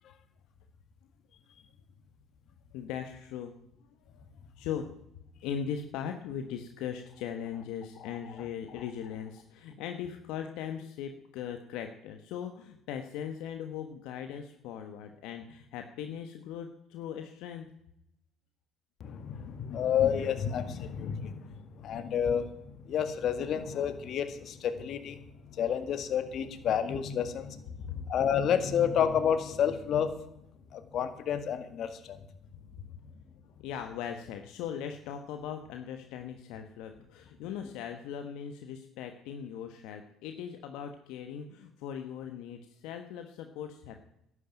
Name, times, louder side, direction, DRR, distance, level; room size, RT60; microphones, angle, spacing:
voice 1, 2.7-3.5 4.1-4.2 4.6-4.9 5.4-17.7 27.8-28.0 33.6-44.0, left 8 dB, 75° left, 6 dB, 1.2 m, -39 dB
voice 2, 19.0-30.1 30.7-32.2, left 8 dB, 60° left, 10 dB, 1.8 m, -30 dB
11.5 x 9.7 x 9.0 m, 0.80 s
supercardioid pair, 70°, 0 cm